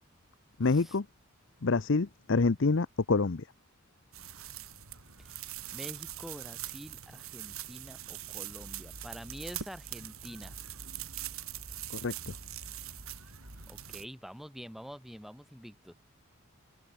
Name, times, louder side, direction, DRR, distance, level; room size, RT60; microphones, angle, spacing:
voice 1, 0.6-1.1 1.6-3.4 11.9-12.3, left 3 dB, 55° left, 0.7 m, -27 dB
sound 1, 4.1-14.1, right 10 dB, 65° right, 6.3 m, -43 dB
voice 2, 5.7-10.6 13.7-16.0, equal, ahead, 2.7 m, -46 dB
open air
head